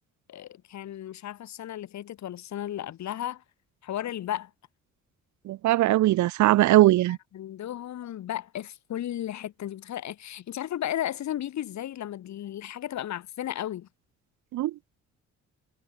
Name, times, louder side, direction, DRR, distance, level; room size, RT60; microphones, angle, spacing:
voice 1, 0.3-3.4 3.8-4.5 7.3-13.9, left 12 dB, 65° left, 1.5 m, -34 dB
voice 2, 5.4-7.2 14.5-14.7, right 15 dB, 70° right, 0.7 m, -20 dB
cardioid pair, 90°, 30 cm